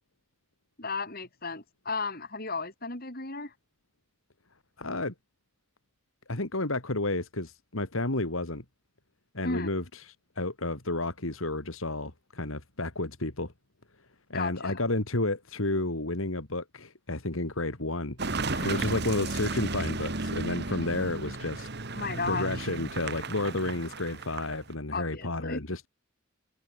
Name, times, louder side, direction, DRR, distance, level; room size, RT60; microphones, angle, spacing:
voice 1, 0.8-3.5 9.4-9.7 14.3-14.8 18.5-18.8 21.9-22.5 24.9-25.6, left 4 dB, 45° left, 5.9 m, -34 dB
voice 2, 4.8-5.1 6.3-8.6 9.3-13.5 14.3-18.2 18.6-21.7 22.2-25.9, left 2 dB, 75° left, 3.0 m, -31 dB
Car passing by / Engine, 18.2-24.7, right 3 dB, 50° right, 1.7 m, -34 dB
head